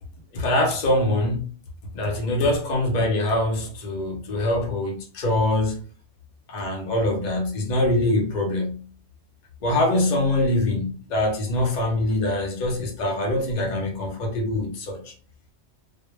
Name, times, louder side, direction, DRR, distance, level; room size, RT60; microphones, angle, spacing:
voice 1, 0.3-1.4 1.9-5.8 6.5-8.8 9.6-15.0, left 1 dB, 50° left, 0.6 m, -23 dB
2.1 x 2.1 x 3.1 m
omnidirectional pair, 1.2 m